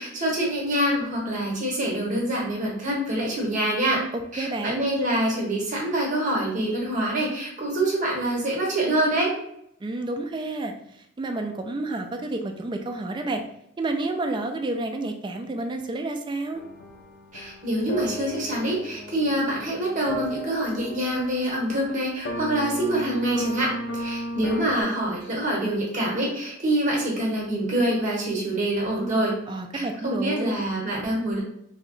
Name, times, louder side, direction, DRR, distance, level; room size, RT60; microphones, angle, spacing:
voice 1, 0.0-4.0 4.3-9.3 17.3-29.3 29.7-31.4, right 1 dB, 40° right, -3 dB, 1.1 m, -25 dB
voice 2, 4.4-4.9 9.8-10.7 11.2-13.4 13.8-16.6 29.5-30.6, right 2 dB, 25° right, 5 dB, 0.3 m, -30 dB
sound 1, 16.5-24.8, left 1 dB, 65° left, 0.5 m, -35 dB
2.7 x 2.2 x 3.9 m, 0.74 s
head